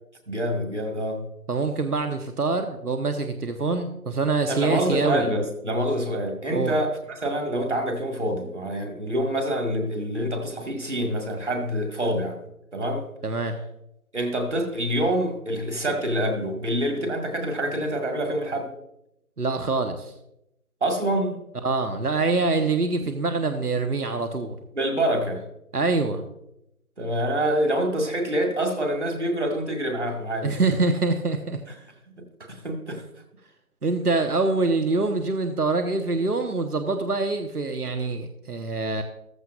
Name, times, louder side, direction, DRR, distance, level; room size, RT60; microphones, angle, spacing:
voice 1, 0.3-1.2 4.5-12.4 12.7-13.0 14.1-18.7 20.8-21.4 24.8-25.5 27.0-30.6 32.2-33.0, right 1 dB, 50° right, 3 dB, 2.1 m, -26 dB
voice 2, 1.5-5.3 6.5-6.7 13.2-13.5 19.4-20.1 21.6-24.6 25.7-26.3 30.4-31.6 33.8-39.0, right 3 dB, 85° right, 6 dB, 1.2 m, -25 dB
15.0 x 13.0 x 2.5 m, 0.84 s
figure-of-eight pair, 170°, 44 cm